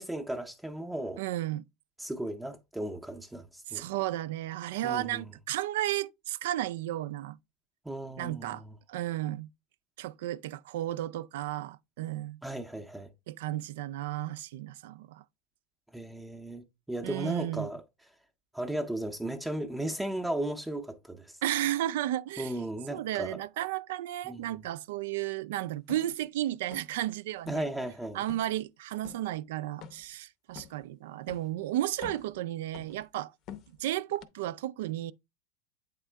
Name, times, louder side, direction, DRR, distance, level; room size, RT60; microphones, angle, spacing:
voice 1, 0.0-1.2 2.0-3.8 4.8-5.2 7.8-8.8 12.4-13.1 15.9-17.8 18.5-21.4 22.4-23.4 24.2-24.6 27.5-28.2, right 1 dB, 5° right, 0.6 m, -36 dB
voice 2, 1.2-1.6 3.7-7.4 8.2-8.6 8.9-9.5 10.0-12.4 13.3-15.2 17.0-17.7 21.4-22.5 22.9-27.6 28.1-33.3 33.8-35.1, right 14 dB, 75° right, 0.3 m, -33 dB
sound 1, 25.9-26.1 26.7-27.1 27.4-27.7 28.3-28.5 29.0-29.3 29.8-30.1 30.5-30.8 31.3-31.5 31.9-32.4 32.7-33.1 33.5-33.8 34.2-34.3, left 8 dB, 45° left, 0.6 m, -46 dB
8.2 x 3.6 x 3.3 m
supercardioid pair, 135°, 0 cm